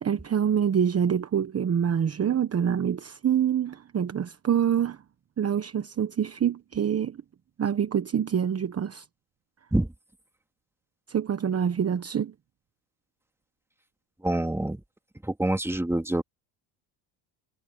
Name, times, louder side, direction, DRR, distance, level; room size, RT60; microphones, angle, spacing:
voice 1, 0.0-5.0 5.4-7.2 7.6-9.0 11.1-12.3, right 8 dB, 30° right, 1.1 m, -26 dB
voice 2, 14.2-14.8 15.2-16.2, right 1 dB, 5° right, 2.3 m, -26 dB
supercardioid pair, 95°, 49 cm